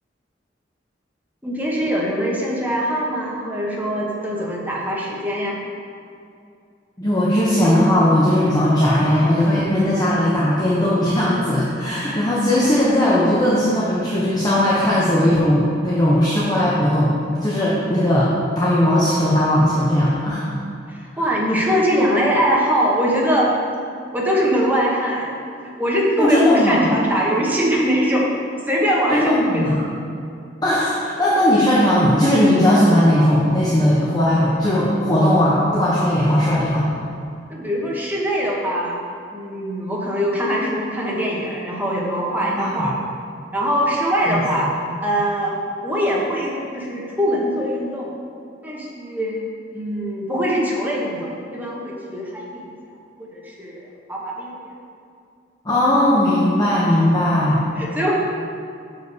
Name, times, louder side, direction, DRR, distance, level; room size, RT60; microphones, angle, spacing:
voice 1, 1.4-5.6 20.9-23.5 24.1-25.4 25.6-28.3 28.7-29.9 37.5-39.0 39.3-42.9 43.5-44.7 45.0-48.1 48.6-52.7 53.4-53.8 54.1-54.5 57.7-58.1, equal, 10° right, -4 dB, 1.1 m, -22 dB
voice 2, 7.0-17.1 17.4-18.3 18.6-20.5 26.2-26.9 29.1-29.8 30.6-36.8 42.6-42.9 44.3-44.6 55.6-57.6, left 1 dB, 20° left, -7 dB, 0.8 m, -18 dB
6.5 x 4.9 x 4.7 m, 2.5 s
head